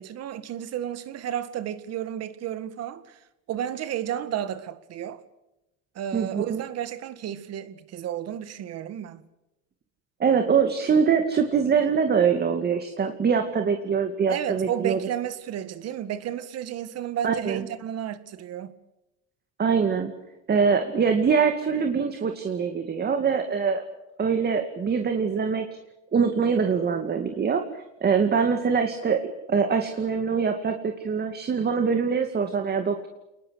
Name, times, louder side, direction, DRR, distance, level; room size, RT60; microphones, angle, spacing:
voice 1, 0.0-3.2 3.5-5.2 6.0-9.2 14.3-18.8, right 10 dB, 50° right, 2.0 m, -32 dB
voice 2, 6.1-6.6 10.2-15.0 17.2-17.6 19.6-20.1 20.5-23.8 24.2-25.7 26.1-29.2 29.5-33.1, right 6 dB, 30° right, 2.3 m, -23 dB
29.5 x 20.5 x 6.6 m
supercardioid pair, 115°, 33 cm